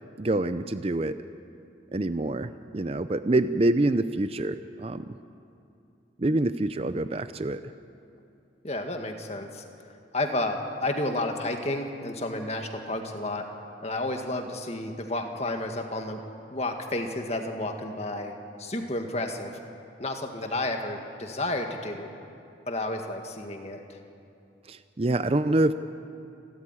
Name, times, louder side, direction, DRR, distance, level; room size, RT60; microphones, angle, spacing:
voice 1, 0.2-1.2 1.9-5.2 6.2-7.6 24.7-25.7, right 2 dB, 30° right, 12 dB, 0.5 m, -26 dB
voice 2, 8.6-9.6 10.1-13.5 13.8-16.2 16.5-19.6 20.0-22.1 22.7-24.0, left 1 dB, 35° left, 4 dB, 1.9 m, -31 dB
28.0 x 13.5 x 9.8 m, 2.6 s
head